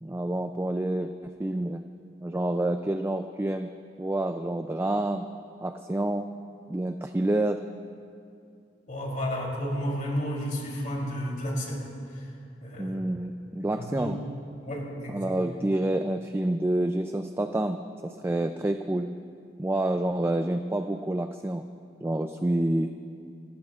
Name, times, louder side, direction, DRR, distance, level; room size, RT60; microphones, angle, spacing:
voice 1, 0.0-1.8 2.2-3.7 4.0-5.3 5.6-6.3 6.7-7.6 12.8-14.2 15.1-17.8 18.0-19.1 19.6-21.6 22.0-22.9, right 1 dB, 15° right, 7 dB, 0.3 m, -28 dB
voice 2, 8.9-11.8 12.6-13.0 13.6-14.1 14.6-15.3, equal, 50° left, -2 dB, 3.3 m, -32 dB
29.0 x 15.0 x 2.4 m, 2.5 s
head